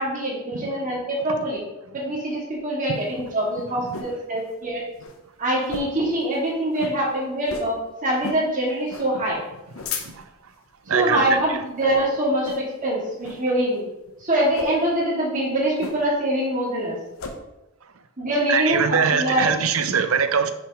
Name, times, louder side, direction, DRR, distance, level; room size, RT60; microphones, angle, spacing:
voice 1, 0.0-1.6 1.9-4.8 5.4-9.4 10.9-13.8 14.2-17.0 18.2-19.5, right 1 dB, 40° right, 2.4 m, -24 dB
sound 1, 3.0-4.2 4.6-4.7 4.9-5.2 5.6-6.1 6.4-6.5 6.8-7.0 7.5-7.8 8.2-8.5 8.9-9.1 9.5-10.4 11.0-11.3 11.7-12.0 12.4-12.8 13.2-13.5 14.4-14.7 15.8-16.3 16.6-17.4, left 4 dB, 75° left, 0.9 m, -35 dB
voice 2, 10.9-11.2 11.5-11.6 18.5-20.5, right 6 dB, 75° right, 0.6 m, -22 dB
6.0 x 4.8 x 4.9 m
head